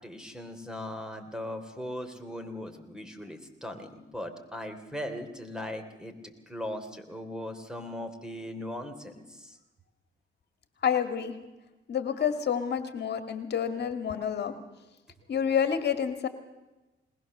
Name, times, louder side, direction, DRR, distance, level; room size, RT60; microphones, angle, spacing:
voice 1, 0.0-9.6, left 1 dB, 5° right, 7 dB, 3.1 m, -39 dB
voice 2, 10.8-11.3 11.9-14.5 15.3-16.3, left 8 dB, 55° left, 8 dB, 2.0 m, -28 dB
21.0 x 20.5 x 6.8 m, 1.1 s
cardioid pair, 90°, 20 cm